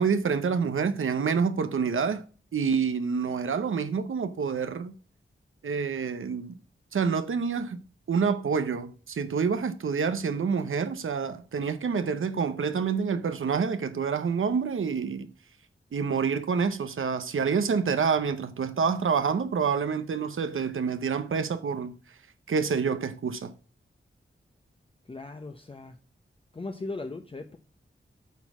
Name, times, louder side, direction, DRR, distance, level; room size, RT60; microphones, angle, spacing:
voice 1, 0.0-2.2 2.5-4.9 5.6-6.6 6.9-7.8 8.1-15.3 15.9-21.9 22.5-23.5, right 6 dB, 85° right, 0.7 m, -27 dB
voice 2, 25.1-25.9 26.5-27.6, left 3 dB, 25° left, 0.7 m, -38 dB
8.4 x 4.3 x 6.0 m
wide cardioid pair, 95°, 20 cm